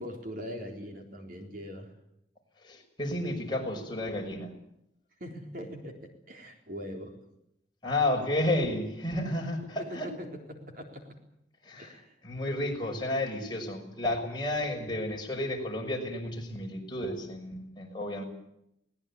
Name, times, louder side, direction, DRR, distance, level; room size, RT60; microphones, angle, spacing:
voice 1, 0.0-1.9 5.2-7.2 9.8-11.2 11.8-12.1, equal, 50° right, 3 dB, 3.8 m, -41 dB
voice 2, 2.6-4.5 7.8-10.1 11.6-12.0 12.2-18.2, left 1 dB, 25° left, 0 dB, 6.0 m, -32 dB
22.0 x 19.5 x 8.5 m, 0.78 s
head